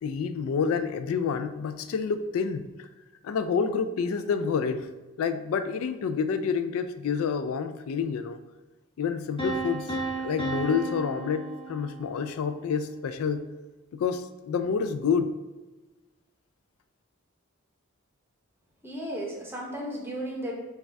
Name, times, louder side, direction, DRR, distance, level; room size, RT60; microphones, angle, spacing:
voice 1, 0.0-2.9 3.2-4.9 5.2-8.4 9.0-13.4 13.9-15.4, left 6 dB, 85° left, 10 dB, 0.3 m, -28 dB
sound 1, 9.4-12.3, right 2 dB, 25° left, 0.9 m, -33 dB
voice 2, 18.8-20.5, right 1 dB, 10° right, -2 dB, 0.8 m, -34 dB
6.4 x 2.4 x 3.3 m, 1.2 s
head